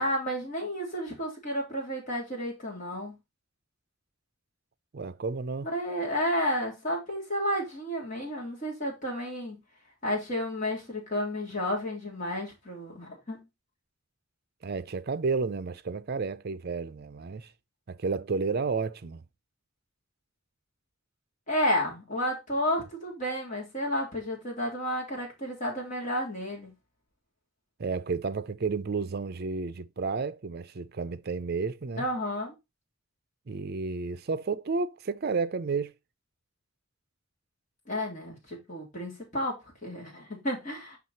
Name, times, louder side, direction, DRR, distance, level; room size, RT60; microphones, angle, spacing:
voice 1, 0.0-3.1 5.7-9.6 10.0-13.4 21.5-26.7 32.0-32.5 37.9-41.0, equal, 40° left, 3.3 m, -31 dB
voice 2, 4.9-5.7 14.6-17.5 17.9-19.2 27.8-32.1 33.5-35.9, right 4 dB, 50° right, 0.5 m, -31 dB
6.1 x 5.5 x 4.1 m
head